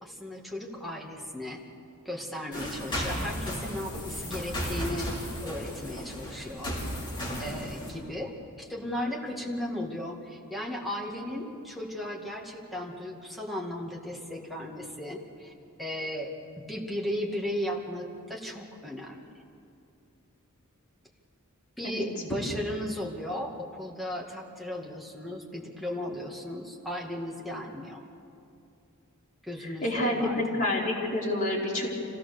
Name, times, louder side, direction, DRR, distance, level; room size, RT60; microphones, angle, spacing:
voice 1, 0.0-1.6 2.1-5.1 5.4-6.7 7.4-15.5 15.8-16.3 16.7-19.3 21.8-28.1 29.4-30.6, left 1 dB, ahead, -2 dB, 2.2 m, -36 dB
sound 1, 2.5-7.9, equal, 20° left, 5.6 m, -35 dB
voice 2, 29.8-31.9, left 1 dB, 35° left, -5 dB, 4.5 m, -28 dB
26.0 x 17.0 x 6.8 m, 2.6 s
head